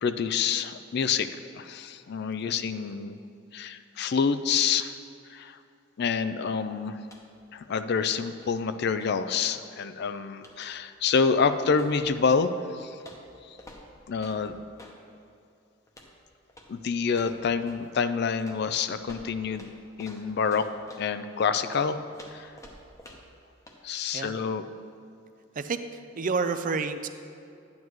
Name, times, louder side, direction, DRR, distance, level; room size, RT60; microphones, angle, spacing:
voice 1, 0.0-1.3 1.5-3.2 3.5-4.9 5.3-5.6 6.0-7.0 7.5-13.0 13.5-13.6 14.1-14.6 16.7-19.7 20.0-20.7 21.0-22.0 22.3-22.5 23.8-24.7, left 5 dB, 55° left, 11 dB, 0.4 m, -27 dB
sound 1, 7.0-7.4 7.7-9.8 10.4-10.7 11.1-12.5 13.0-15.0 15.9-16.2 16.5-16.8 17.1-17.9 18.4-21.1 21.7-23.4 23.7-23.8, left 1 dB, 15° left, 0.9 m, -51 dB
voice 2, 25.6-27.1, right 4 dB, 40° right, 10 dB, 0.4 m, -30 dB
12.0 x 9.4 x 3.1 m, 2.5 s
head